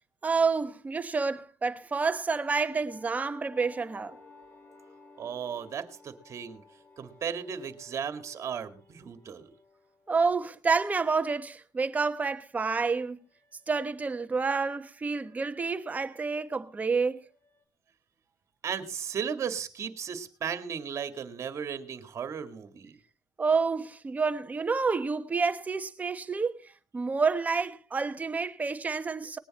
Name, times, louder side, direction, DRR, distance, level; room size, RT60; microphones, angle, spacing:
voice 1, 0.2-4.2 10.1-13.2 13.7-17.2 23.4-29.4, right 4 dB, 20° right, 1.1 m, -29 dB
sound 1, 2.9-10.4 12.3-17.6, left 3 dB, 30° left, 3.7 m, -56 dB
voice 2, 5.2-6.6 7.0-9.5 18.6-23.0, right 7 dB, 45° right, 2.0 m, -35 dB
19.5 x 10.0 x 4.2 m
cardioid pair, 120°, 7 cm